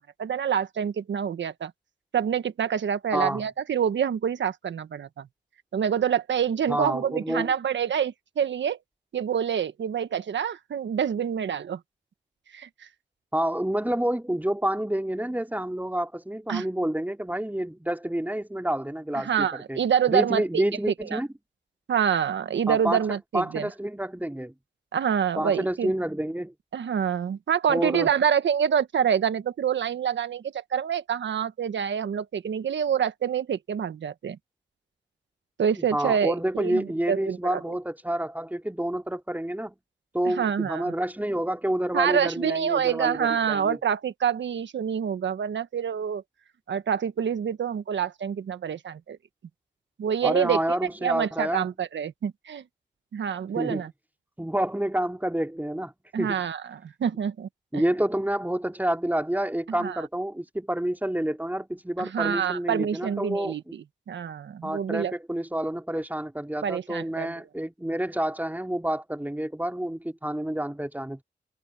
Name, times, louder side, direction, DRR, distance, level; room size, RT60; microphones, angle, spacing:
voice 1, 0.0-1.7 2.1-5.3 5.7-8.8 9.1-11.8 12.5-12.9 16.5-16.7 19.1-20.6 21.0-21.2 21.9-23.7 24.9-25.9 26.7-34.4 35.6-37.6 40.2-40.9 41.9-46.2 46.7-49.2 50.0-50.6 51.0-52.6 53.1-53.9 56.1-57.8 59.8-60.0 62.0-65.1 66.6-67.3, right 8 dB, 75° right, 1.4 m, -27 dB
voice 2, 3.1-3.4 6.7-7.5 13.3-19.8 20.1-21.3 22.7-23.1 23.3-24.5 25.4-26.5 27.7-28.1 35.8-39.8 40.1-43.8 50.2-51.7 53.6-53.8 54.4-55.9 56.2-56.5 57.7-63.7 64.6-71.2, right 1 dB, 10° right, 3.9 m, -28 dB
cardioid pair, 45°, 19 cm